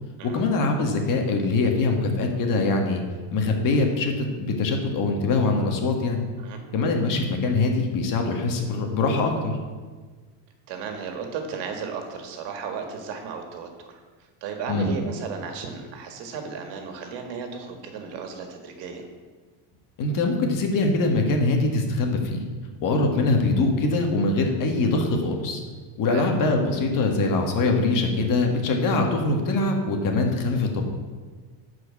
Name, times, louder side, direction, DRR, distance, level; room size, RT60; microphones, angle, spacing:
voice 1, 0.2-3.0 3.3-6.2 6.7-9.5 14.7-14.9 20.0-22.4 22.8-25.6 26.0-30.8, left 3 dB, 50° left, 3 dB, 1.7 m, -23 dB
voice 2, 10.7-14.0 14.4-19.1 26.1-26.3, right 5 dB, 75° right, 4 dB, 1.8 m, -34 dB
11.0 x 4.9 x 7.1 m, 1.4 s
cardioid pair, 150°, 42 cm